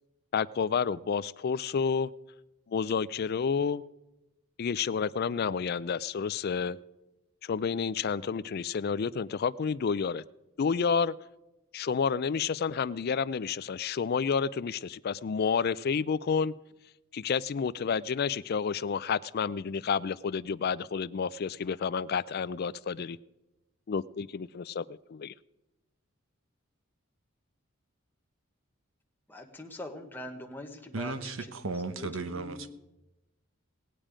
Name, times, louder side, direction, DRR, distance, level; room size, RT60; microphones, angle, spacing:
voice 1, 0.3-2.1 2.7-3.8 4.6-6.8 7.4-10.2 10.6-11.1 11.7-16.5 17.1-23.2 23.9-25.3, left 6 dB, 50° left, 18 dB, 0.4 m, -30 dB
voice 2, 29.3-31.5 31.9-32.7, left 1 dB, 10° left, 3 dB, 1.2 m, -43 dB
voice 3, 30.9-32.7, right 3 dB, 65° right, 10 dB, 1.0 m, -35 dB
18.5 x 8.9 x 5.0 m, 0.98 s
head